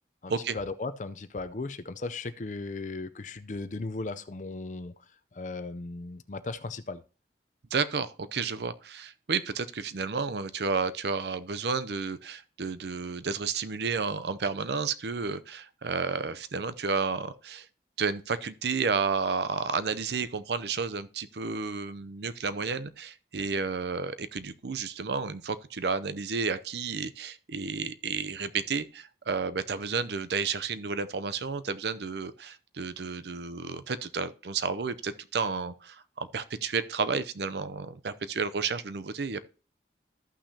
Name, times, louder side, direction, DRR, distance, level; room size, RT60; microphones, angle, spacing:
voice 1, 0.2-4.9 5.3-7.0, left 3 dB, 45° left, 0.5 m, -36 dB
voice 2, 7.7-17.7 18.0-39.4, right 5 dB, 70° right, 0.6 m, -31 dB
14.0 x 5.8 x 2.8 m
head